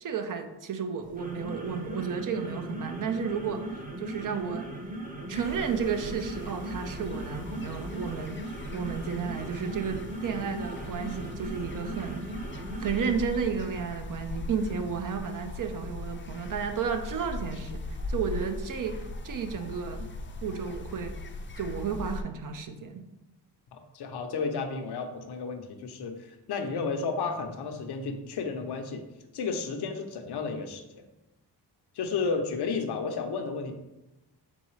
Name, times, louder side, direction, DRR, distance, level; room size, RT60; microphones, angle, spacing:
voice 1, 0.0-3.7 4.0-4.7 5.3-8.4 8.7-12.3 12.8-20.1 20.4-21.2 21.6-23.0, right 6 dB, 50° right, 7 dB, 0.6 m, -32 dB
sound 1, 1.0-13.0, right 1 dB, 20° right, 0.8 m, -39 dB
sound 2, 5.3-22.2, left 2 dB, 30° left, 0.5 m, -40 dB
voice 2, 23.7-29.0 29.3-31.0 31.9-33.7, left 4 dB, 70° left, 5 dB, 0.7 m, -32 dB
3.8 x 3.8 x 3.1 m, 0.96 s
cardioid pair, 65°, 41 cm